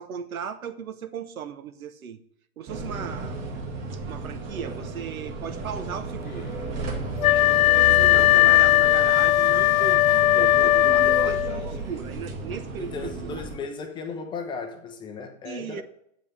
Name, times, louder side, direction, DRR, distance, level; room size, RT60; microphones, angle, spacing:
voice 1, 0.0-2.2 2.6-3.4 3.9-6.6 7.7-13.4 15.4-15.8, right 7 dB, 85° right, 1.1 m, -37 dB
sound 1, 2.7-13.6, right 3 dB, 30° right, 1.5 m, -33 dB
Wind instrument woodwind instrument, 7.2-11.6, left 15 dB, 80° left, 0.6 m, -18 dB
voice 2, 8.0-8.3 12.8-15.8, left 5 dB, 10° left, 0.5 m, -36 dB
7.8 x 5.4 x 6.7 m
hypercardioid pair, 140°, 41 cm